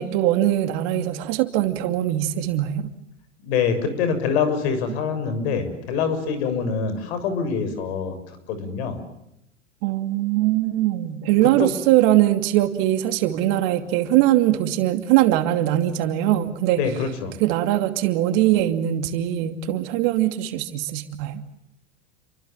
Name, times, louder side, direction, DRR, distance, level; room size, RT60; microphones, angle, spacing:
voice 1, 0.0-2.8 9.8-16.8 17.4-21.4, right 14 dB, 50° right, 9 dB, 2.7 m, -21 dB
voice 2, 3.4-8.2 8.5-9.0 11.6-11.7 16.8-17.3, left 6 dB, 60° left, 10 dB, 6.8 m, -25 dB
29.5 x 25.0 x 7.4 m, 0.83 s
hypercardioid pair, 90°, 36 cm